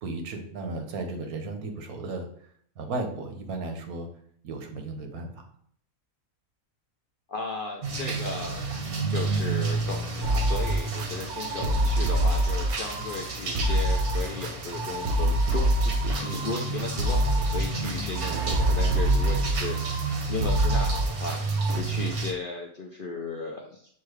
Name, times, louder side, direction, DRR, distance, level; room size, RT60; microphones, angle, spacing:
voice 1, 0.0-2.3 2.8-4.1 4.4-5.5, right 3 dB, 85° right, 5 dB, 1.3 m, -35 dB
voice 2, 7.3-8.8 9.1-21.4 21.7-23.8, left 4 dB, 65° left, 0 dB, 0.5 m, -36 dB
sound 1, 7.8-22.3, right 4 dB, 50° right, 0.8 m, -31 dB
sound 2, 10.2-21.8, right 1 dB, 65° right, 0.5 m, -26 dB
6.4 x 2.3 x 3.2 m, 0.63 s
omnidirectional pair, 1.5 m